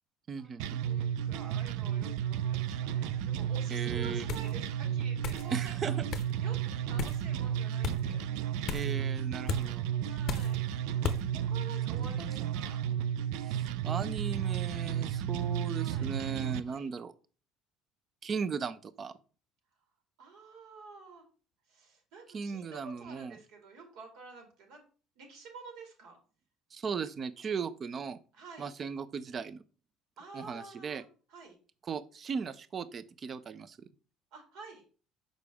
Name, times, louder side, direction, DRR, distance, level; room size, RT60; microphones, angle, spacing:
voice 1, 0.3-0.8 3.7-4.2 5.5-5.9 8.7-9.8 12.0-12.5 13.4-17.1 18.2-19.2 22.3-23.4 26.7-28.2 28.6-29.6 30.3-31.0 31.9-33.9, right 6 dB, 30° right, 16 dB, 0.4 m, -37 dB
sound 1, 0.6-16.6, right 10 dB, 90° right, 0.4 m, -33 dB
voice 2, 0.8-6.0 6.4-8.2 9.5-9.8 10.1-12.9 15.8-16.1 16.7-16.9 20.2-21.2 21.7-24.8 25.2-26.2 28.3-28.7 30.2-31.6 34.3-34.8, right 4 dB, 70° right, 3 dB, 2.3 m, -50 dB
sound 2, 4.3-4.5 5.2-5.5 6.1-6.3 7.0-7.2 7.8-8.0 8.7-8.9 9.5-9.7 10.3-10.6 11.0-11.2, left 7 dB, 40° left, 0.6 m, -34 dB
6.5 x 5.0 x 3.5 m, 0.37 s
cardioid pair, 155°, 0 cm